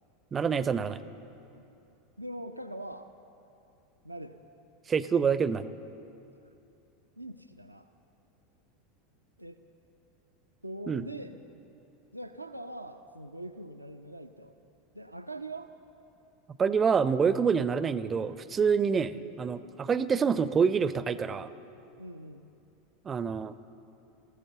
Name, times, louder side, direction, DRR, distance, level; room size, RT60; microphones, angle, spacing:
voice 1, 0.3-1.0 4.9-5.7 10.9-11.1 16.6-21.5 23.0-23.5, right 6 dB, 25° right, 16 dB, 0.5 m, -27 dB
voice 2, 2.2-3.1 4.0-4.4 7.2-7.9 9.4-9.6 10.6-11.4 12.1-14.5 14.9-15.7 18.7-19.1 22.0-22.5, right 1 dB, 85° right, 8 dB, 0.5 m, -42 dB
14.5 x 14.0 x 6.9 m, 2.8 s
figure-of-eight pair, 80°, 0 cm